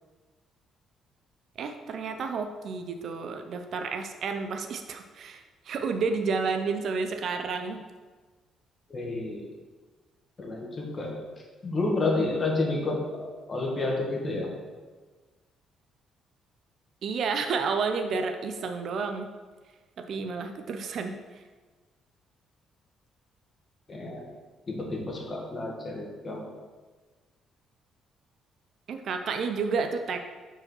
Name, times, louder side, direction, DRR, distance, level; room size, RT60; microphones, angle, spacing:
voice 1, 1.6-7.8 17.0-19.3 20.0-21.4 28.9-30.2, right 4 dB, 55° right, 6 dB, 0.5 m, -31 dB
voice 2, 8.9-9.5 10.4-11.2 11.6-14.5 23.9-24.3 24.7-26.5, left 2 dB, 30° left, -1 dB, 1.5 m, -30 dB
5.0 x 4.9 x 6.2 m, 1.4 s
cardioid pair, 130°, 0 cm